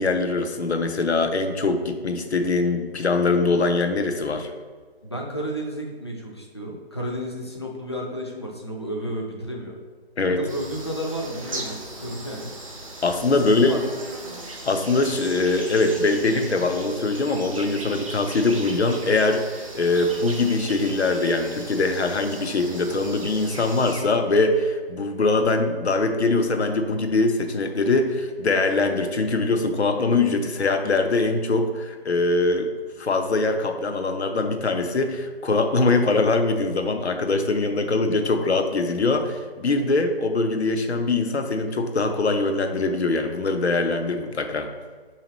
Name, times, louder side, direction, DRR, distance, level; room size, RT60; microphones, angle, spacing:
voice 1, 0.0-4.5 10.2-10.4 13.0-13.7 14.5-32.7 33.0-44.7, left 3 dB, 85° left, 6 dB, 0.7 m, -22 dB
voice 2, 5.0-9.8 10.3-12.5 13.5-13.9, equal, 25° left, -1 dB, 0.4 m, -32 dB
sound 1, 10.5-24.0, right 2 dB, 30° right, 0.5 m, -38 dB
6.2 x 2.8 x 3.0 m, 1.5 s
figure-of-eight pair, 160°, 32 cm